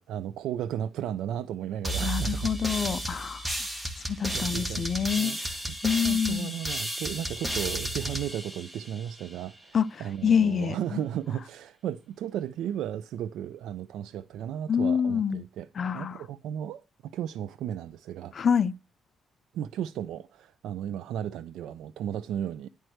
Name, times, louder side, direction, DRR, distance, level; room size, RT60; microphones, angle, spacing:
voice 1, 0.0-2.5 3.5-3.7 4.3-4.9 5.2-5.4 5.7-5.8 6.0-15.7 15.9-18.3 19.5-22.7, right 10 dB, 80° right, 0.5 m, -35 dB
sound 1, 1.8-9.3, right 1 dB, 10° right, 1.6 m, -33 dB
voice 2, 2.0-3.5 4.1-5.3 5.8-6.5 9.7-9.9 10.2-11.0 14.7-15.4 15.8-16.2 18.3-18.7, left 7 dB, 50° left, 0.6 m, -26 dB
11.0 x 4.6 x 7.8 m
cardioid pair, 90°, 0 cm